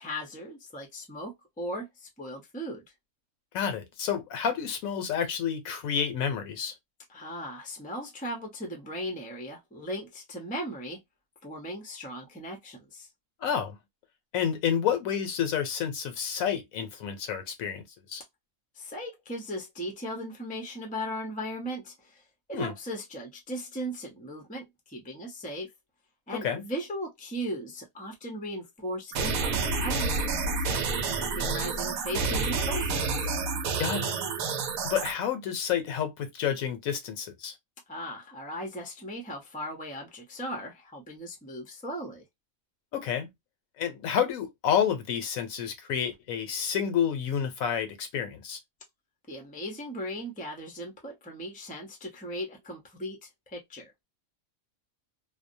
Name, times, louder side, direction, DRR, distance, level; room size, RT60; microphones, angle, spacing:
voice 1, 0.0-2.8 7.1-11.0 11.4-13.1 18.7-22.2 22.5-25.7 26.3-30.8 31.2-33.3 37.9-42.2 49.3-54.0, equal, 10° left, 0.4 m, -37 dB
voice 2, 3.5-6.7 13.4-13.8 14.3-18.2 22.5-22.7 26.4-26.6 33.8-34.2 34.8-37.5 42.9-43.3 43.8-48.6, left 8 dB, 75° left, 1.1 m, -29 dB
sound 1, 29.1-35.1, right 4 dB, 75° right, 1.0 m, -29 dB
2.6 x 2.0 x 2.6 m
omnidirectional pair, 1.5 m